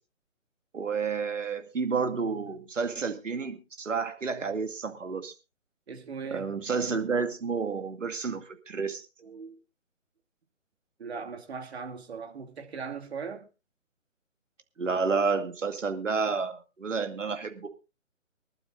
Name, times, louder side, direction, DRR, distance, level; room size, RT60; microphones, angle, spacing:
voice 1, 0.7-5.3 6.3-9.1 14.8-17.7, right 5 dB, 70° right, 2.4 m, -30 dB
voice 2, 5.9-6.5 9.2-9.6 11.0-13.5, right 5 dB, 55° right, 2.6 m, -39 dB
24.5 x 12.0 x 2.5 m
figure-of-eight pair, 145°, 39 cm